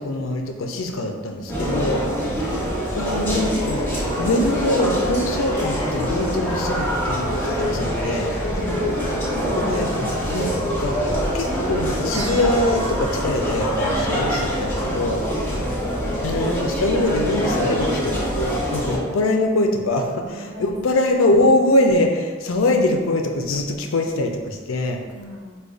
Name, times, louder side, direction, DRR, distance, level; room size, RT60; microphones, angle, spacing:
voice 1, 0.0-2.0 2.9-3.9 4.2-8.3 9.4-10.5 10.8-11.0 11.3-15.2 16.2-25.0, left 2 dB, 75° left, 3 dB, 0.4 m, -23 dB
sound 1, 1.5-19.0, equal, 10° left, 1.0 m, -24 dB
voice 2, 8.5-9.3 15.4-15.6 20.0-21.6 25.1-25.6, left 1 dB, 70° right, -6 dB, 1.1 m, -40 dB
sound 2, 12.1-14.6, right 3 dB, 85° right, 0.6 m, -39 dB
4.9 x 2.2 x 2.4 m, 1.4 s
head